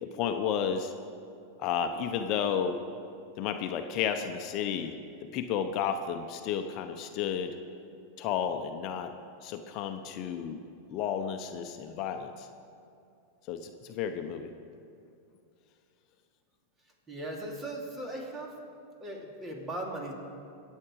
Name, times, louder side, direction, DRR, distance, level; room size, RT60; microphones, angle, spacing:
voice 1, 0.0-0.9 1.6-2.8 3.4-4.9 5.2-7.5 8.2-9.1 9.4-10.6 10.9-12.5 13.5-14.5, left 8 dB, 45° left, 7 dB, 0.9 m, -32 dB
voice 2, 17.1-18.5 19.0-20.2, right 1 dB, 25° right, 0 dB, 3.1 m, -38 dB
23.0 x 8.5 x 4.8 m, 2.5 s
hypercardioid pair, 100°, 0 cm